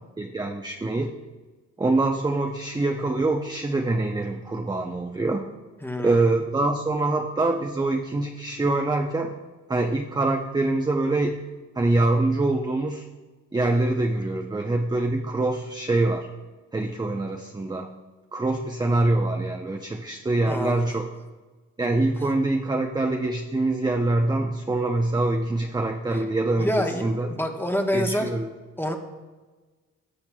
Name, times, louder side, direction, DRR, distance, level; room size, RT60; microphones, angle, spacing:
voice 1, 0.2-1.1 1.8-5.4 6.0-9.3 9.7-11.4 11.8-13.0 13.5-16.3 16.7-18.0 18.3-21.1 21.8-27.3 27.9-28.5, right 2 dB, 15° right, 2 dB, 0.6 m, -24 dB
voice 2, 5.8-6.4 20.4-21.0 26.1-26.2 26.6-28.3 28.8-29.0, left 1 dB, 5° left, 3 dB, 1.1 m, -27 dB
16.0 x 5.7 x 2.3 m, 1.3 s
cardioid pair, 75°, 32 cm